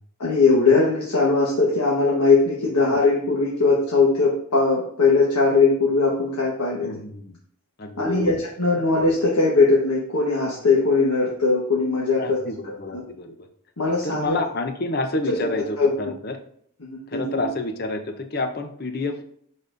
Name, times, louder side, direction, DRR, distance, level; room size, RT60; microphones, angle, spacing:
voice 1, 0.2-6.9 8.0-12.4 12.7-13.0 13.8-14.4 15.3-16.0 16.8-17.5, left 3 dB, 85° left, -5 dB, 1.3 m, -20 dB
voice 2, 6.8-7.4 7.8-8.3 12.2-13.3 14.0-16.4 17.1-19.2, left 2 dB, 45° left, 6 dB, 0.7 m, -29 dB
10.0 x 4.1 x 2.6 m, 0.63 s
head